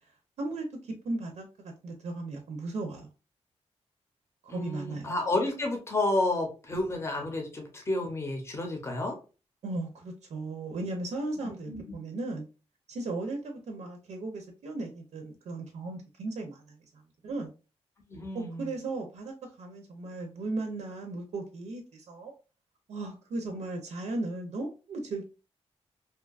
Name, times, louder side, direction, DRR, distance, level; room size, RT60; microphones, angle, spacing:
voice 1, 0.4-1.5 1.8-3.1 4.4-5.1 9.6-12.5 12.9-16.8 17.2-17.5 18.3-22.3 22.9-25.2, right 2 dB, 80° right, 3 dB, 0.5 m, -36 dB
voice 2, 4.5-9.2 11.7-11.8 18.1-18.7, left 2 dB, 25° left, 2 dB, 0.6 m, -31 dB
2.7 x 2.2 x 2.3 m, 0.32 s
wide cardioid pair, 160°, 11 cm